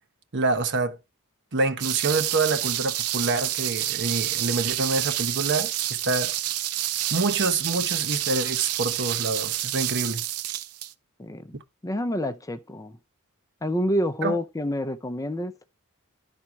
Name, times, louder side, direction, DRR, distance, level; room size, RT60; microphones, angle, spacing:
voice 1, 0.3-1.0 1.5-5.7 6.0-6.3 7.1-10.2 14.2-14.4, right 3 dB, 55° right, 1.0 m, -26 dB
sound 1, 1.8-10.9, right 13 dB, 85° right, 0.6 m, -28 dB
voice 2, 11.2-13.0 13.6-15.5, equal, 15° left, 0.6 m, -28 dB
11.5 x 4.3 x 4.6 m
head